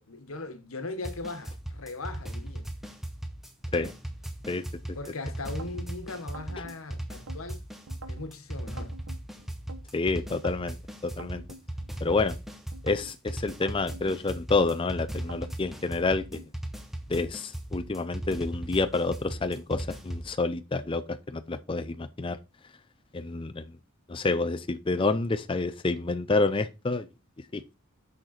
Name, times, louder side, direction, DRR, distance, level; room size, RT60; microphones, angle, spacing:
voice 1, 0.0-2.7 4.9-7.6 8.1-8.9, left 3 dB, 85° left, 1.3 m, -39 dB
sound 1, 1.0-20.3, right 1 dB, ahead, 1.1 m, -37 dB
voice 2, 4.5-5.0 9.9-10.8 11.0-11.4 12.0-12.4 12.8-16.4 17.1-22.4 23.1-23.7 24.1-27.1 27.5-27.7, left 3 dB, 25° left, 0.5 m, -28 dB
sound 2, 5.4-5.9 6.3-7.4 7.9-8.3 8.8-9.8 10.3-10.7 11.2-12.3 12.7-13.1 13.6-14.7 15.1-15.6 16.0-16.5, right 3 dB, 85° right, 1.1 m, -46 dB
6.6 x 6.4 x 4.2 m
head